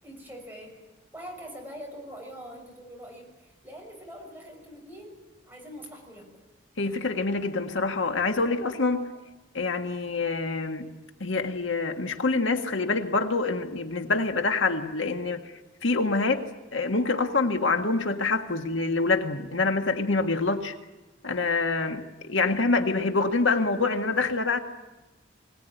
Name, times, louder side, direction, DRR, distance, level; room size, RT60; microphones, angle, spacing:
voice 1, 0.0-0.8 1.1-6.3, equal, 10° right, 0 dB, 6.2 m, -43 dB
voice 2, 6.8-9.1 9.5-10.9 11.2-15.4 15.8-16.4 16.7-20.7 21.2-24.6, left 3 dB, 85° left, 5 dB, 1.7 m, -26 dB
22.5 x 18.0 x 9.2 m, 1.1 s
head